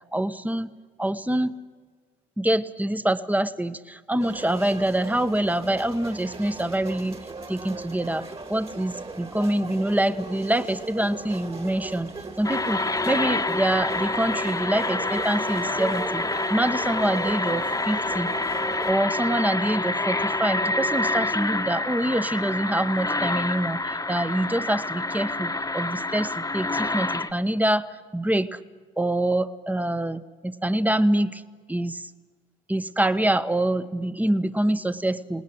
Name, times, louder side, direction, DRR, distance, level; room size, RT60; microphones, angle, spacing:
voice 1, 0.1-0.7 1.0-1.5 2.4-7.2 7.5-12.1 12.4-18.3 18.8-28.6 29.0-31.4 31.7-32.0 32.7-35.4, right 1 dB, 10° right, 12 dB, 1.2 m, -25 dB
sound 1, 4.2-18.9, right 3 dB, 30° right, 2.5 m, -38 dB
sound 2, 12.4-27.3, left 2 dB, 15° left, 1.4 m, -27 dB
Trumpet, 18.1-25.3, right 5 dB, 70° right, 7.3 m, -50 dB
29.5 x 19.0 x 7.9 m, 1.5 s
cardioid pair, 90°, 20 cm